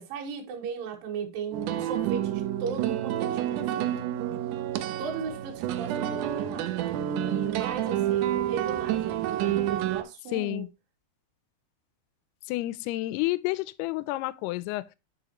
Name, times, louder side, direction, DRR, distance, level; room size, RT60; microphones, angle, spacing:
voice 1, 0.0-4.4 5.0-10.7, right 6 dB, 65° right, 3.3 m, -37 dB
sound 1, 1.5-10.0, right 11 dB, 85° right, 1.8 m, -29 dB
voice 2, 10.3-10.7 12.5-15.0, left 18 dB, 85° left, 2.6 m, -30 dB
9.8 x 5.0 x 2.9 m
omnidirectional pair, 4.5 m